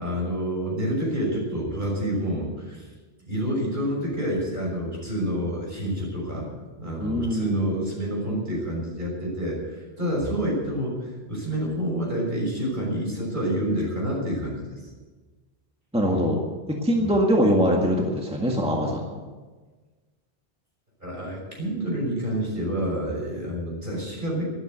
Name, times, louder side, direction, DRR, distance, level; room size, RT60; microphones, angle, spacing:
voice 1, 0.0-2.8 3.3-6.5 6.8-14.6 16.9-17.1 21.0-24.4, equal, 50° right, -3 dB, 6.5 m, -28 dB
voice 2, 7.0-7.7 15.9-16.4 16.8-19.2, equal, 5° right, -1 dB, 1.8 m, -23 dB
13.0 x 12.0 x 8.2 m, 1.3 s
omnidirectional pair, 1.1 m